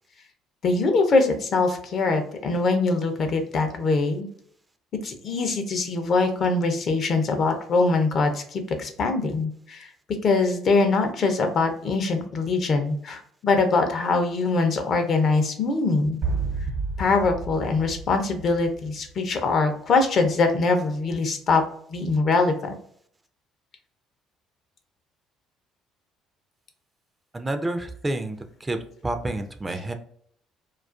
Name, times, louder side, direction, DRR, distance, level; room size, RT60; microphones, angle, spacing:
voice 1, 0.6-4.3 5.0-9.9 10.2-16.2 17.0-21.6 21.9-22.7, left 3 dB, 55° left, 6 dB, 0.5 m, -23 dB
sound 1, 16.2-19.1, right 4 dB, 60° right, 0.9 m, -31 dB
voice 2, 27.3-28.8 29.0-29.9, right 2 dB, 20° right, 7 dB, 0.4 m, -29 dB
2.3 x 2.3 x 2.4 m, 0.63 s
supercardioid pair, 65°, 0 cm